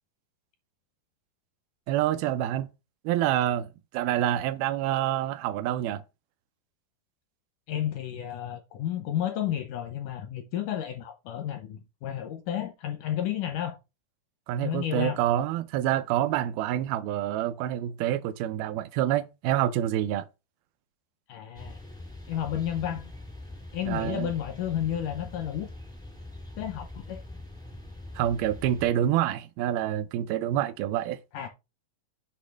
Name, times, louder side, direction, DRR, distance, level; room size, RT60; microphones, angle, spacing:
voice 1, 1.9-2.7 3.0-3.7 3.9-6.0 14.5-20.3 23.9-24.3 28.2-31.2, right 12 dB, 80° right, 2.4 m, -27 dB
voice 2, 7.7-13.8 14.6-15.2 21.3-21.8 22.3-23.1 23.7-25.7 26.6-27.2 31.3-31.5, left 10 dB, 80° left, 1.9 m, -32 dB
sound 1, 21.5-28.9, left 1 dB, 5° left, 0.3 m, -43 dB
8.2 x 3.0 x 6.2 m
omnidirectional pair, 4.4 m